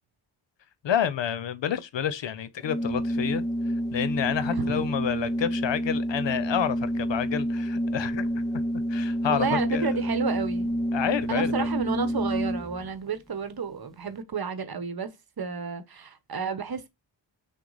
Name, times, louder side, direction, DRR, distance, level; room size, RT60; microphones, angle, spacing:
voice 1, 0.8-3.4 3.9-8.4 8.9-9.9 10.9-11.7, left 9 dB, 65° left, 0.7 m, -29 dB
Organ, 2.6-12.9, equal, ahead, 0.3 m, -28 dB
voice 2, 4.5-4.9 9.3-10.7 11.3-16.9, right 5 dB, 50° right, 0.9 m, -31 dB
5.9 x 2.2 x 3.9 m
cardioid pair, 40°, 48 cm